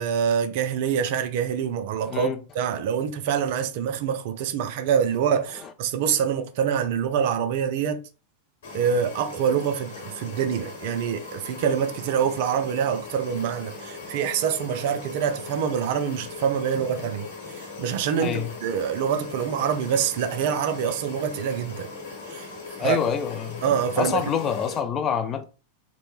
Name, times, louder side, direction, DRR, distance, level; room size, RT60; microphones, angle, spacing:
voice 1, 0.0-2.3 2.5-8.0 8.7-17.3 17.5-21.9 22.3-22.5 22.8-23.0 23.6-24.2, right 8 dB, 50° right, 0.3 m, -25 dB
voice 2, 2.0-2.4 5.6-5.7 18.2-18.5 22.8-25.4, left 7 dB, 25° left, 0.3 m, -27 dB
sound 1, 8.6-24.8, left 3 dB, 55° left, 1.0 m, -39 dB
2.9 x 2.1 x 2.4 m
figure-of-eight pair, 90°, 0 cm